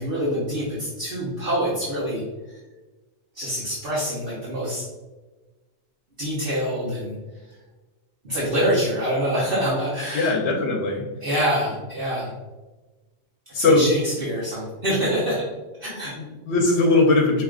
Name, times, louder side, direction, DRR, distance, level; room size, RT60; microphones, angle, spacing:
voice 1, 0.0-2.2 3.3-4.9 6.2-7.2 8.2-10.3 11.2-12.3 13.5-15.4 15.8-16.1, equal, 55° right, -8 dB, 1.3 m, -25 dB
voice 2, 10.1-11.1 13.5-13.9 16.1-17.4, left 2 dB, 70° left, 0 dB, 1.0 m, -20 dB
4.9 x 3.0 x 2.4 m, 1.2 s
omnidirectional pair, 1.2 m